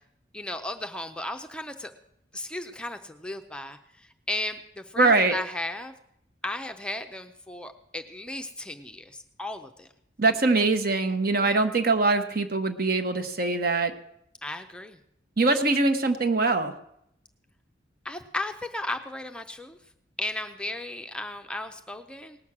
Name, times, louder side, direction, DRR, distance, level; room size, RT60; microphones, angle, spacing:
voice 1, 0.3-1.9 2.3-5.9 6.4-9.9 11.4-11.5 14.4-15.0 18.0-19.8 20.2-22.4, left 1 dB, 5° left, 6 dB, 0.6 m, -35 dB
voice 2, 5.0-5.3 10.2-13.9 15.4-16.7, right 3 dB, 55° right, 7 dB, 1.1 m, -23 dB
18.5 x 6.3 x 7.3 m, 0.77 s
head